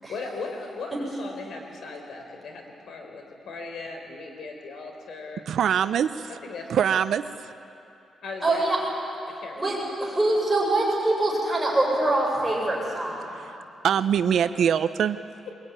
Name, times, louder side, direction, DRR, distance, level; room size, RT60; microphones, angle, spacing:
voice 1, 0.1-5.4 6.4-6.7 8.2-8.7 9.3-9.9, left 3 dB, 65° left, 3 dB, 4.3 m, -38 dB
voice 2, 5.5-6.3 6.7-7.5 13.4-15.2, right 8 dB, 65° right, 12 dB, 0.6 m, -24 dB
voice 3, 8.4-8.8 9.6-9.7 10.0-13.3, right 2 dB, 5° right, -4 dB, 7.2 m, -24 dB
22.0 x 21.5 x 9.6 m, 2.8 s
cardioid pair, 140°, 0 cm